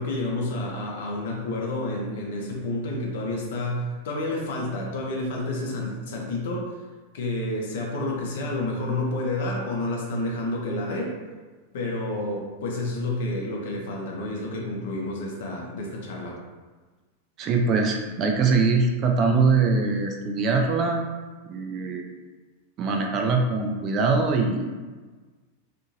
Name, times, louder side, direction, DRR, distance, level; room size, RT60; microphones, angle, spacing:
voice 1, 0.0-6.8 7.1-11.2 11.7-16.4, left 2 dB, 55° left, -1 dB, 0.6 m, -29 dB
voice 2, 17.4-21.0 21.4-22.0 22.8-24.7, right 4 dB, 35° right, 2 dB, 0.4 m, -22 dB
2.7 x 2.5 x 2.6 m, 1.3 s
figure-of-eight pair, 90°, 0 cm